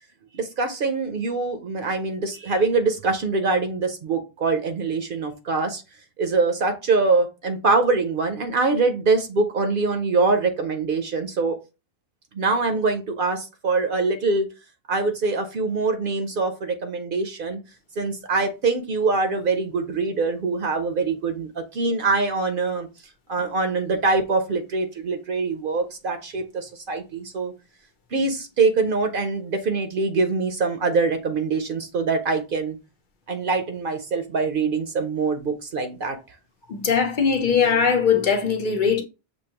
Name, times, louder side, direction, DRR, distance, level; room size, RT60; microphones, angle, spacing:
voice 1, 0.3-5.8 6.2-11.6 12.3-14.5 14.9-17.6 18.0-22.9 23.3-27.5 28.1-32.8 33.3-36.2, right 3 dB, 60° right, 0.8 m, -24 dB
voice 2, 36.7-39.0, left 6 dB, 55° left, 0.8 m, -20 dB
6.3 x 2.7 x 2.8 m
omnidirectional pair, 1.0 m